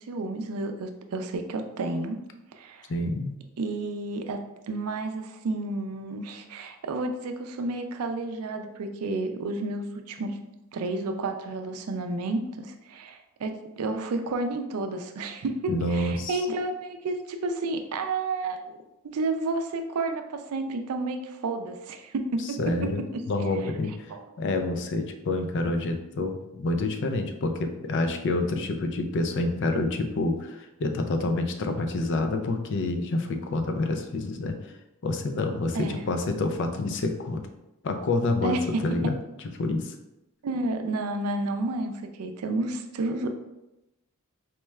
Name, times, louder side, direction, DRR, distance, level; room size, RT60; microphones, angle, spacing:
voice 1, 0.0-2.2 2.5-2.9 3.6-4.4 4.7-10.4 10.7-18.6 19.0-23.7 24.1-24.2 35.7-36.0 38.4-38.8 40.4-41.9 42.2-43.3, right 2 dB, 80° right, 6 dB, 0.4 m, -31 dB
voice 2, 2.9-3.3 15.7-16.4 22.6-24.1 24.4-34.7 35.0-37.4 37.8-38.6 38.8-39.2 39.6-39.9, left 2 dB, 55° left, 6 dB, 0.4 m, -28 dB
4.4 x 2.3 x 3.1 m, 0.93 s
head